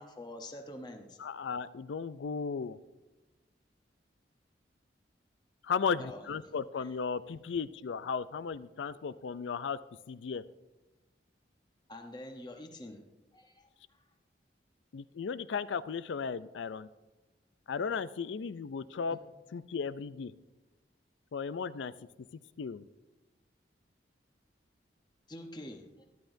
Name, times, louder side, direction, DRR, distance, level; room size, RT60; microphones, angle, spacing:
voice 1, 0.0-1.5 6.0-6.3 6.8-6.9 11.9-13.0 13.3-13.7 25.3-26.1, left 1 dB, 25° left, 4 dB, 0.9 m, -46 dB
voice 2, 1.2-2.8 5.6-9.8 10.1-10.4 14.9-16.9 17.7-19.2 19.5-20.3 21.3-21.9 22.6-22.8, left 5 dB, 80° left, 16 dB, 0.4 m, -35 dB
12.5 x 11.5 x 2.6 m, 1.1 s
head